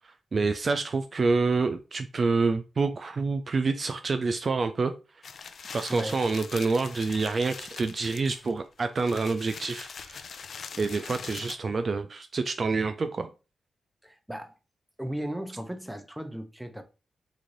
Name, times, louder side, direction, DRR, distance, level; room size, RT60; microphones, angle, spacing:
voice 1, 0.3-4.9 5.7-10.2 10.8-13.3, right 4 dB, 45° right, 0.3 m, -27 dB
sound 1, 5.2-11.6, left 6 dB, 65° left, 0.4 m, -42 dB
voice 2, 5.9-6.2 14.0-14.6 15.0-16.8, right 1 dB, 5° right, 0.6 m, -36 dB
3.1 x 2.6 x 3.8 m
cardioid pair, 90°, 0 cm